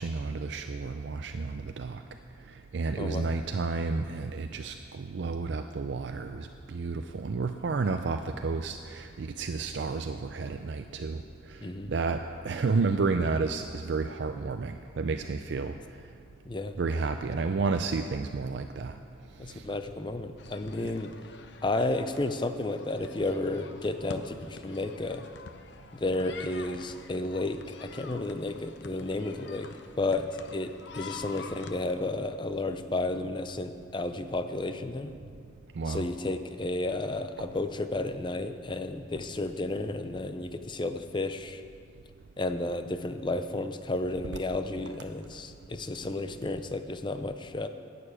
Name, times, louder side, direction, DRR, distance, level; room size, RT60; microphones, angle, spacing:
voice 1, 0.0-2.0 2.7-11.2 11.5-11.6 11.9-15.8 16.8-18.9 19.5-19.6 20.8-20.9 35.8-36.0, right 4 dB, 65° right, 7 dB, 0.4 m, -31 dB
voice 2, 3.0-3.3 11.6-11.9 16.4-16.8 19.4-21.1 21.6-25.3 25.9-29.7 30.0-35.1 35.9-41.6 42.4-47.7, left 2 dB, 25° left, 9 dB, 0.5 m, -32 dB
sound 1, 20.4-31.8, left 4 dB, 70° left, 0.7 m, -47 dB
11.0 x 6.9 x 8.5 m, 2.3 s
head